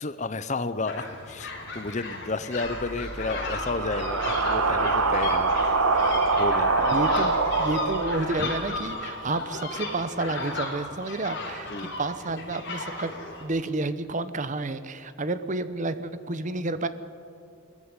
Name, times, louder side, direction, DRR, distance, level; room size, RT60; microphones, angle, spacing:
voice 1, 0.0-5.7 6.4-6.7 8.4-8.5 11.7-11.9, left 3 dB, 35° left, 14 dB, 0.7 m, -32 dB
sound 1, 0.9-13.4, left 3 dB, 55° left, 4.6 m, -35 dB
sound 2, 2.6-8.8, right 3 dB, 90° right, 1.3 m, -25 dB
voice 2, 6.8-11.7 12.0-13.1 13.4-16.9, right 2 dB, 35° right, 13 dB, 0.8 m, -30 dB
21.5 x 14.0 x 9.6 m, 2.5 s
head